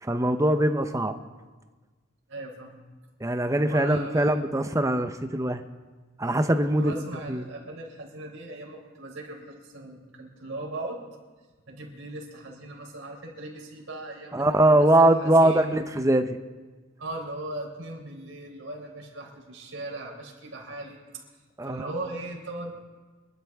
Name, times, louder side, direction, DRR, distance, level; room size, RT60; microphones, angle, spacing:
voice 1, 0.0-1.2 3.2-5.6 6.2-6.9 7.3-7.5 14.3-16.4 21.6-21.9, right 1 dB, 15° right, 8 dB, 0.7 m, -22 dB
voice 2, 2.3-2.8 3.7-4.4 6.6-11.0 11.7-15.8 17.0-21.2 21.6-22.8, right 2 dB, 75° right, -1 dB, 3.8 m, -38 dB
26.0 x 11.5 x 3.6 m, 1.3 s
head